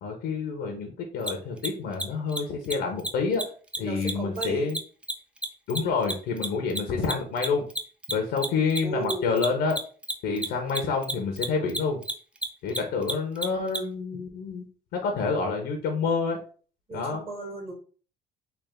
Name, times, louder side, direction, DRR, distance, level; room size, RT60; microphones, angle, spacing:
voice 1, 0.0-3.4 3.8-4.8 5.7-7.6 8.1-9.7 10.2-12.0 12.6-14.6 14.9-16.4 16.9-17.2, left 4 dB, 80° left, 4 dB, 0.8 m, -28 dB
Mechanisms, 1.2-1.3 1.6-1.7 1.9-2.0 2.3-2.4 2.6-2.7 3.0-3.1 3.3-3.4 3.7-6.5 6.7-13.8, right 1 dB, 5° right, 0.5 m, -30 dB
voice 2, 3.8-4.7 8.8-9.3 16.9-17.7, right 3 dB, 35° right, -2 dB, 1.7 m, -34 dB
3.4 x 2.4 x 3.5 m, 0.40 s
cardioid pair, 110°, 17 cm